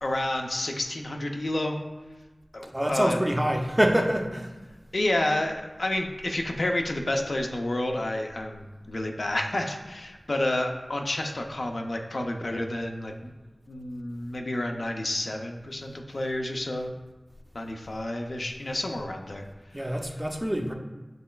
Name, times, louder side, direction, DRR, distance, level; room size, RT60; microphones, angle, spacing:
voice 1, 0.0-1.8 2.5-3.2 4.9-13.1 13.7-16.9 17.5-19.4, left 1 dB, 75° left, 2 dB, 0.5 m, -30 dB
voice 2, 2.6-4.5 19.7-20.7, equal, 20° right, 3 dB, 0.5 m, -25 dB
7.6 x 3.0 x 2.2 m, 1.1 s
wide cardioid pair, 50°, 0 cm